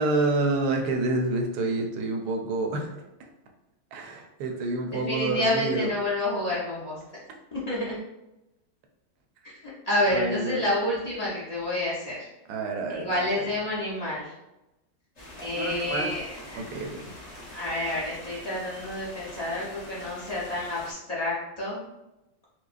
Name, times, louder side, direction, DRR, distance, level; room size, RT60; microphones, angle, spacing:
voice 1, 0.0-2.9 3.9-5.9 10.1-10.6 12.5-13.5 15.5-16.1 16.5-17.2, right 2 dB, 70° right, 3 dB, 1.0 m, -28 dB
voice 2, 5.1-7.0 7.5-8.0 9.9-12.3 12.9-14.3 15.4-16.6 17.5-21.8, left 1 dB, 65° left, -8 dB, 0.3 m, -29 dB
sound 1, 15.2-20.9, left 1 dB, 30° left, 0.8 m, -44 dB
4.6 x 2.1 x 2.5 m, 0.96 s
omnidirectional pair, 1.9 m